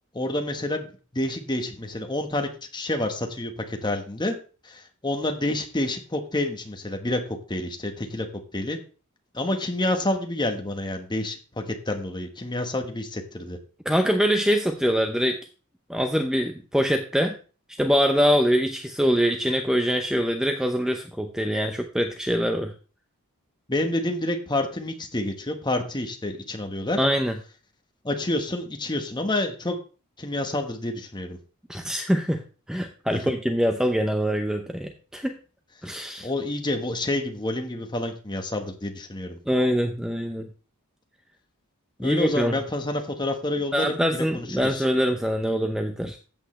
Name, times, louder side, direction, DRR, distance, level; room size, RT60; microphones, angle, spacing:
voice 1, 0.1-0.9 1.1-4.3 4.6-8.3 8.5-8.8 9.3-13.6 23.7-27.0 28.0-29.8 30.2-31.4 36.2-39.4 42.0-44.9, left 1 dB, 20° left, 5 dB, 1.3 m, -28 dB
voice 2, 13.9-15.4 15.9-17.4 17.8-22.7 27.0-27.3 31.7-32.4 32.7-35.3 35.8-36.3 39.5-40.5 42.0-42.6 43.7-46.2, equal, 5° right, 5 dB, 0.6 m, -24 dB
14.0 x 8.3 x 3.2 m, 0.36 s
head